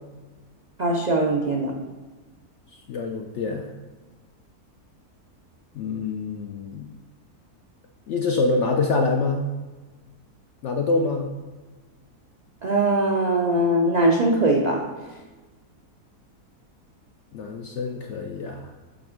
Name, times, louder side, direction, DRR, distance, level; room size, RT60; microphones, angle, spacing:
voice 1, 0.8-1.7 12.6-14.9, right 1 dB, 60° right, 0 dB, 0.4 m, -21 dB
voice 2, 2.9-3.7 5.8-6.9 8.1-9.5 10.6-11.3 17.3-18.7, left 3 dB, 70° left, 3 dB, 0.7 m, -25 dB
8.4 x 3.5 x 5.0 m, 1.2 s
omnidirectional pair, 1.7 m